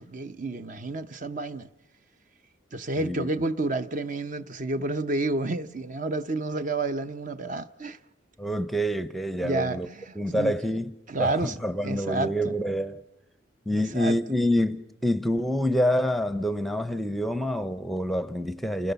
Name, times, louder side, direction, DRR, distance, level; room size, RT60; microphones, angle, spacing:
voice 1, 0.0-1.7 2.7-8.0 9.4-10.5 11.1-12.5 13.7-14.2, right 2 dB, 40° right, 0.8 m, -30 dB
voice 2, 3.0-3.3 8.4-9.9 10.2-13.0 13.7-18.9, equal, ahead, 0.7 m, -27 dB
29.0 x 17.5 x 6.9 m
head